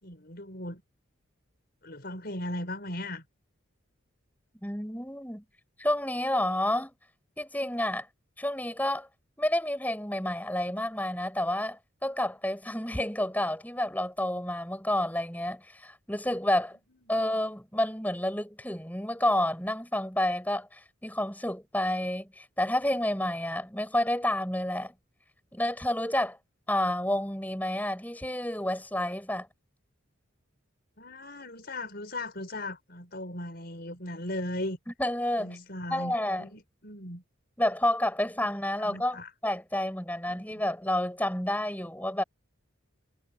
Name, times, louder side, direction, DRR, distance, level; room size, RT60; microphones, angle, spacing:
voice 1, 0.0-0.8 1.8-3.2 17.1-17.2 31.0-34.8 35.4-37.2 38.8-39.3 40.3-40.4, left 1 dB, 50° left, 5.9 m, -37 dB
voice 2, 4.6-5.4 5.8-6.9 7.4-8.1 8.4-9.1 9.4-16.8 17.1-24.9 25.5-26.4 26.7-29.5 34.9-35.6 35.9-36.5 37.6-42.2, left 1 dB, 10° left, 7.6 m, -29 dB
head